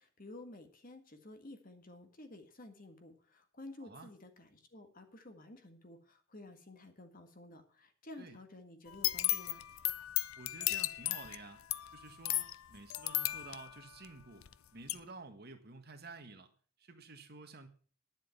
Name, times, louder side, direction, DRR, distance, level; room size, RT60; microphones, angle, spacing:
voice 1, 0.0-9.6, left 2 dB, 40° left, 1.7 m, -52 dB
voice 2, 3.8-4.1 8.2-8.4 10.3-11.6 11.9-14.5 14.7-16.5 16.8-17.7, right 3 dB, 50° right, 1.6 m, -51 dB
sound 1, 8.9-14.5 14.9-15.0, left 15 dB, 80° left, 0.5 m, -35 dB
10.5 x 7.5 x 7.2 m
head